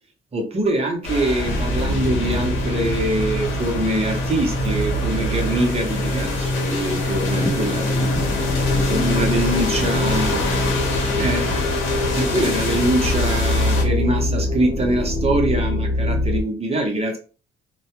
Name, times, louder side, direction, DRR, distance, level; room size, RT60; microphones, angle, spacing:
voice 1, 0.3-7.8 8.7-10.4 11.2-11.6 12.1-17.2, right 1 dB, 30° right, 2 dB, 0.7 m, -23 dB
sound 1, 1.0-13.8, left 2 dB, 80° left, 0.8 m, -26 dB
sound 2, 1.4-16.4, left 1 dB, 40° left, 1.0 m, -24 dB
voice 2, 7.3-8.4 8.7-11.7 12.7-12.8, left 1 dB, 20° left, 2 dB, 0.5 m, -34 dB
2.2 x 2.1 x 2.9 m, 0.35 s
cardioid pair, 90°, 20 cm